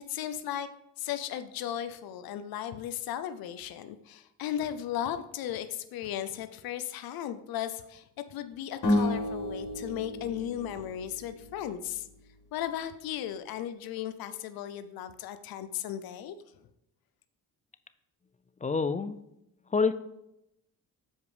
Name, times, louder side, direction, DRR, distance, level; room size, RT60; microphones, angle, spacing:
voice 1, 0.1-0.7 1.0-12.1 12.5-16.4, left 11 dB, 90° left, 11 dB, 0.5 m, -36 dB
sound 1, 8.8-12.0, left 1 dB, 60° left, 2.5 m, -31 dB
voice 2, 18.6-19.2 19.7-19.9, left 5 dB, 20° left, 13 dB, 0.4 m, -26 dB
7.3 x 4.9 x 4.9 m, 0.83 s
cardioid pair, 80°, 35 cm